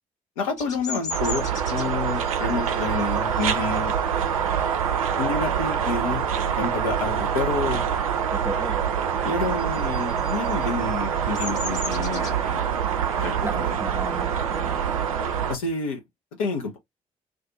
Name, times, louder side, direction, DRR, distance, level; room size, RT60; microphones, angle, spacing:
voice 1, 0.4-3.9 5.2-6.2 6.6-7.8 9.2-12.6 13.2-13.8 15.5-16.0 16.4-16.8, left 4 dB, 75° left, 0.8 m, -29 dB
Bird vocalization bird call bird song, 0.6-5.8 6.2-6.5 6.8-8.1 8.3-15.7, left 3 dB, 45° left, 1.3 m, -39 dB
sound 1, 1.1-15.6, right 8 dB, 80° right, 0.4 m, -25 dB
voice 2, 8.3-8.8 13.4-14.9, right 1 dB, 10° right, 0.4 m, -35 dB
2.5 x 2.5 x 3.8 m
figure-of-eight pair, 40°, 18 cm